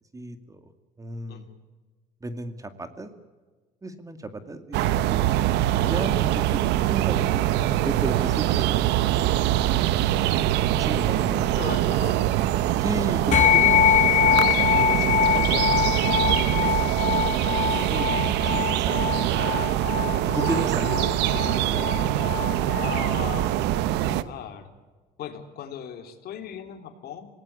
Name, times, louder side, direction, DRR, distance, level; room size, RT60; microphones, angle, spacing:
voice 1, 0.1-0.6 1.0-1.5 2.2-3.1 3.8-5.5 5.8-8.9 10.7-11.7 12.8-19.3 20.2-21.3 21.6-22.0, right 2 dB, 20° right, 9 dB, 2.3 m, -35 dB
sound 1, 4.7-24.2, right 13 dB, 80° right, 1.0 m, -23 dB
voice 2, 5.9-6.3 11.6-12.2 22.8-24.7 25.2-27.3, left 9 dB, 65° left, 6 dB, 3.1 m, -38 dB
sound 2, 13.3-23.0, left 10 dB, 45° left, 1.5 m, -24 dB
26.5 x 18.5 x 8.3 m, 1.4 s
cardioid pair, 105°, 17 cm